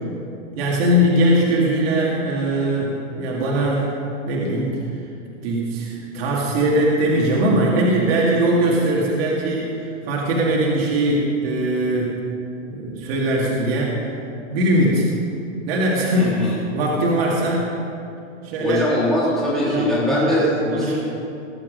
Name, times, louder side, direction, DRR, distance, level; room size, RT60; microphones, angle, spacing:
voice 1, 0.6-3.9 4.2-4.8 5.4-12.2 12.7-14.0 14.5-15.1 15.7-17.7 18.4-18.8 19.6-20.4 20.7-21.0, right 1 dB, 50° right, -4 dB, 2.2 m, -20 dB
voice 2, 16.2-16.6 18.6-21.0, left 1 dB, ahead, -8 dB, 2.9 m, -21 dB
19.5 x 7.3 x 5.2 m, 2.7 s
supercardioid pair, 165°, 38 cm